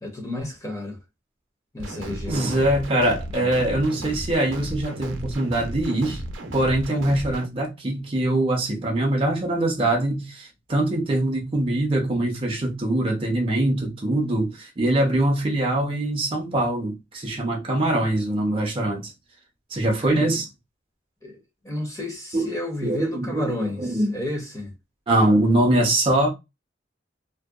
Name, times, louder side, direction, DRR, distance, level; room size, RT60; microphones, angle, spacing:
voice 1, 0.0-1.0 1.7-2.4 3.4-3.5 20.1-20.3 21.2-21.4 21.6-24.7, left 1 dB, 15° left, 0.6 m, -31 dB
sound 1, 1.8-7.5, right 1 dB, 85° right, 0.5 m, -34 dB
voice 2, 2.3-6.2 6.5-19.1 19.7-20.5 22.3-22.5 22.8-24.2 25.1-26.3, right 1 dB, 30° right, 0.5 m, -23 dB
2.6 x 2.1 x 2.3 m
head